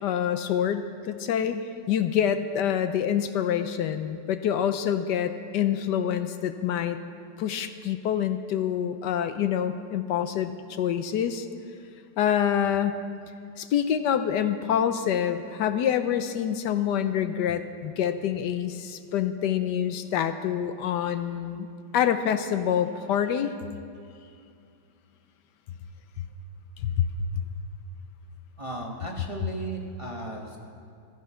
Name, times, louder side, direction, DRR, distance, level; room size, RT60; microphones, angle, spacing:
voice 1, 0.0-7.0 7.4-10.5 10.8-11.5 12.2-13.0 13.6-21.7 21.9-23.5 26.8-27.1, left 9 dB, 75° left, 9 dB, 1.2 m, -26 dB
voice 2, 28.6-30.6, right 2 dB, 20° right, 0 dB, 0.9 m, -35 dB
14.5 x 13.0 x 5.6 m, 2.4 s
omnidirectional pair, 2.0 m